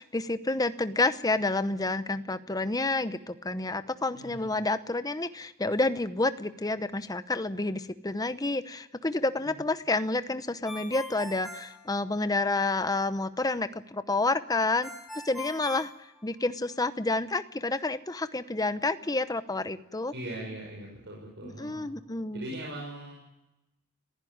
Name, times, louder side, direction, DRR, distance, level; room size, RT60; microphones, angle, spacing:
voice 1, 0.0-14.9 15.2-15.9 16.2-20.1 21.4-22.5, left 2 dB, 20° left, 12 dB, 0.8 m, -29 dB
voice 2, 4.1-4.5 20.1-21.9 22.3-23.1, right 1 dB, 55° right, -2 dB, 5.8 m, -40 dB
Ringtone, 10.6-12.6 14.8-16.7, left 2 dB, ahead, 5.2 m, -42 dB
27.0 x 15.5 x 9.5 m, 0.95 s
head